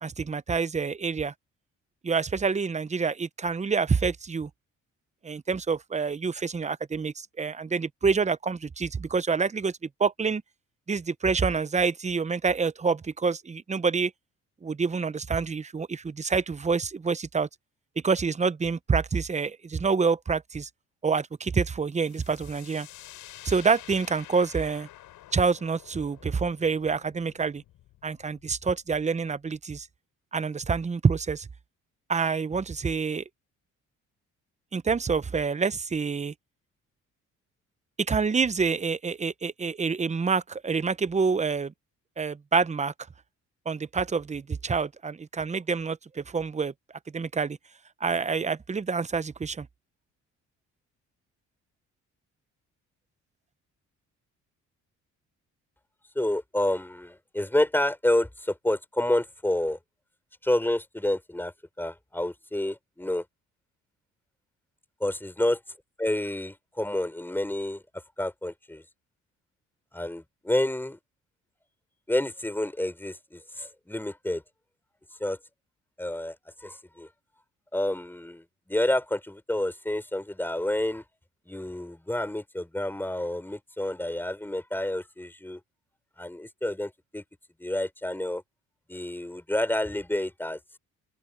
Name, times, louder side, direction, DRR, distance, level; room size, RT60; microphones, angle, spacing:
voice 1, 0.0-1.3 2.0-4.5 5.2-9.7 10.0-10.4 10.9-14.1 14.6-17.5 18.0-20.7 21.0-22.9 23.4-24.9 25.3-27.6 28.0-29.9 30.3-31.5 32.1-33.2 34.7-36.3 38.0-41.7 42.2-42.9 43.7-46.7 47.1-47.6 48.0-49.7, right 5 dB, 25° right, 0.8 m, -27 dB
sound 1, 22.0-29.6, left 14 dB, 90° left, 8.0 m, -50 dB
voice 2, 56.1-59.8 60.4-63.2 65.0-65.6 66.0-68.8 69.9-71.0 72.1-74.4 75.2-75.4 76.0-76.4 76.6-77.1 77.7-81.0 81.5-85.6 86.2-87.2 87.6-88.4 88.9-90.6, left 1 dB, 5° left, 4.5 m, -29 dB
open air
cardioid pair, 90°, 30 cm